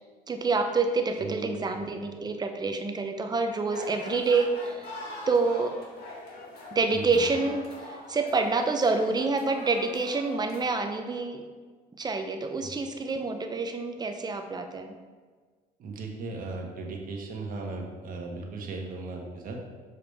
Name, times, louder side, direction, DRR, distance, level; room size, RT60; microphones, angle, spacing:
voice 1, 0.3-4.9 5.3-5.8 6.7-11.4 12.0-14.9, right 3 dB, 25° right, 6 dB, 0.7 m, -27 dB
voice 2, 1.2-1.7 6.9-7.2 15.8-19.6, right 3 dB, 55° right, 0 dB, 1.3 m, -37 dB
sound 1, 3.7-10.7, left 2 dB, 65° left, 1.5 m, -43 dB
6.9 x 4.9 x 3.5 m, 1.5 s
cardioid pair, 110°, 17 cm